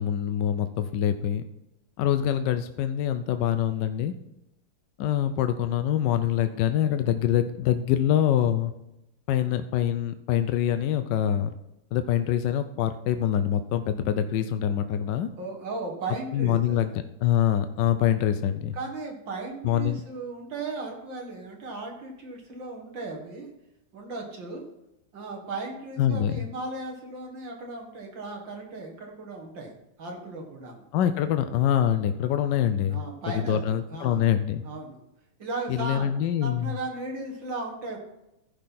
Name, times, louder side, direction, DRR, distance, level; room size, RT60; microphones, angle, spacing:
voice 1, 0.0-1.4 2.0-4.1 5.0-8.7 9.3-11.5 11.9-15.3 16.3-18.8 19.6-20.0 26.0-26.4 30.9-33.0 33.3-34.6 35.7-36.8, left 10 dB, 75° left, 9 dB, 1.0 m, -25 dB
voice 2, 15.4-16.8 18.7-23.5 23.9-24.7 25.1-29.7 30.0-30.8 32.9-33.6 33.9-34.2 34.6-35.0 35.4-36.1 36.4-38.0, right 3 dB, 60° right, 0 dB, 2.4 m, -36 dB
15.0 x 5.7 x 4.2 m, 0.87 s
omnidirectional pair, 2.4 m